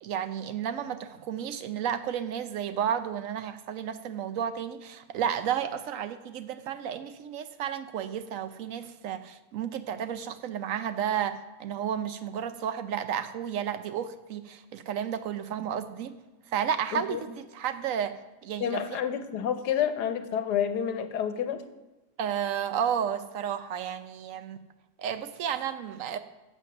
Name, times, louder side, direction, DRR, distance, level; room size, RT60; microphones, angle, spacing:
voice 1, 0.0-16.2 16.5-18.2 18.4-19.0 22.2-24.6 25.0-26.2, right 8 dB, 65° right, 11 dB, 0.9 m, -32 dB
voice 2, 16.9-17.2 18.6-21.6, left 9 dB, 85° left, 9 dB, 1.4 m, -29 dB
7.7 x 7.5 x 6.6 m, 1.1 s
omnidirectional pair, 1.7 m